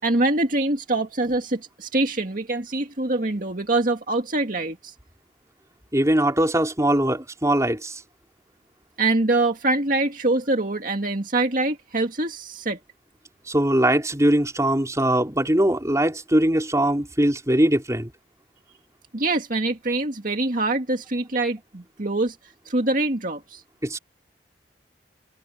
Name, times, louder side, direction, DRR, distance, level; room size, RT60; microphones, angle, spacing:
voice 1, 0.0-4.9 9.0-12.8 19.1-23.6, right 2 dB, 50° right, 2.1 m, -24 dB
voice 2, 5.9-8.0 13.5-18.1 23.8-24.0, right 1 dB, 20° right, 4.3 m, -21 dB
head